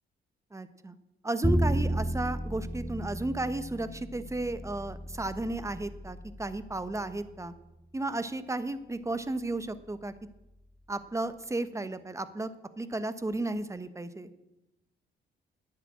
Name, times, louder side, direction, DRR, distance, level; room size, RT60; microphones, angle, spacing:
voice 1, 0.5-1.0 1.2-7.5 7.9-10.1 10.9-12.5 12.8-14.3, right 2 dB, 15° right, 12 dB, 1.1 m, -33 dB
Bowed string instrument, 1.4-7.6, equal, 5° left, 0.6 m, -33 dB
10.0 x 9.9 x 8.5 m, 0.96 s
cardioid pair, 90°, 20 cm